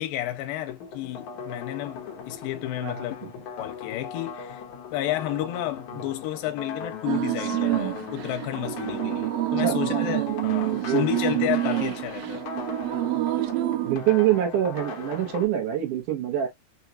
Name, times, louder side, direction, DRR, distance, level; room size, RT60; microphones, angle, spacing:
voice 1, 0.0-3.2 3.6-4.6 4.9-12.5, left 13 dB, 85° left, 2.4 m, -31 dB
sound 1, 0.7-15.4, left 6 dB, 65° left, 2.0 m, -39 dB
sound 2, 7.1-14.0, right 15 dB, 90° right, 2.4 m, -27 dB
voice 2, 13.8-16.5, right 11 dB, 70° right, 2.3 m, -25 dB
5.9 x 2.4 x 2.7 m
omnidirectional pair, 4.2 m